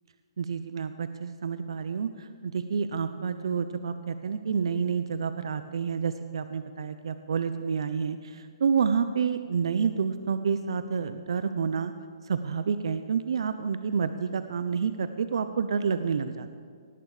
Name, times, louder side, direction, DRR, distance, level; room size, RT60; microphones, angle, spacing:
voice 1, 0.4-11.9 12.2-16.5, right 6 dB, 70° right, 11 dB, 0.6 m, -29 dB
17.5 x 8.8 x 4.9 m, 2.1 s
hypercardioid pair, 160°, 3 cm